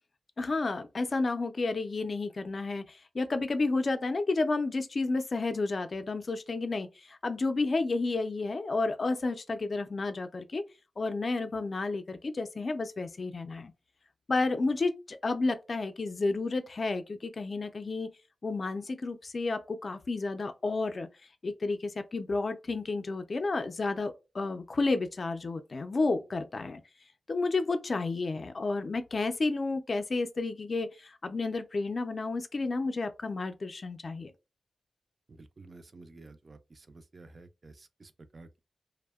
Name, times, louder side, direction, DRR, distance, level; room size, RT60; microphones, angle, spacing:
voice 1, 0.4-10.6 11.0-13.7 14.3-18.1 18.4-21.1 21.4-26.8 27.3-34.3, left 3 dB, 50° left, 0.4 m, -31 dB
voice 2, 35.3-38.6, right 2 dB, 45° right, 0.3 m, -52 dB
2.6 x 2.1 x 2.2 m
cardioid pair, 70°, 0 cm